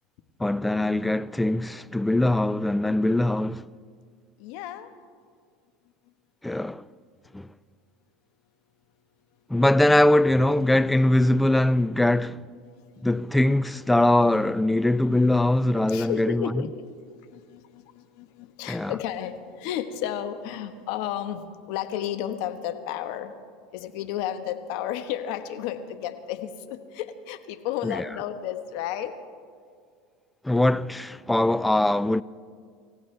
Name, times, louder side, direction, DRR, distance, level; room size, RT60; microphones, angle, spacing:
voice 1, 0.4-3.7 6.4-6.9 7.3-7.5 9.5-12.4 13.0-16.6 18.7-19.0 27.8-28.0 30.4-32.2, left 1 dB, 5° left, 0.4 m, -22 dB
voice 2, 4.4-4.9 15.9-16.8 17.3-23.3 23.7-29.1, left 10 dB, 65° left, 1.2 m, -32 dB
28.0 x 15.5 x 3.3 m
supercardioid pair, 110°, 0 cm